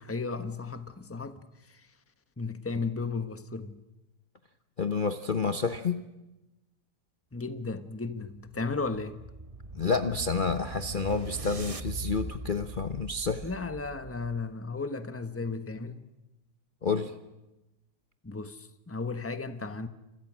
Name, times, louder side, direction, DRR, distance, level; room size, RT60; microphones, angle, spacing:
voice 1, 0.0-1.4 2.4-3.8 7.3-9.2 13.4-16.0 18.2-19.9, left 4 dB, 10° left, 1.1 m, -34 dB
voice 2, 4.8-6.0 9.7-13.4 16.8-17.1, left 4 dB, 35° left, 1.0 m, -29 dB
sound 1, 8.5-14.5, right 2 dB, 25° right, 1.0 m, -41 dB
30.0 x 27.5 x 6.3 m
omnidirectional pair, 1.8 m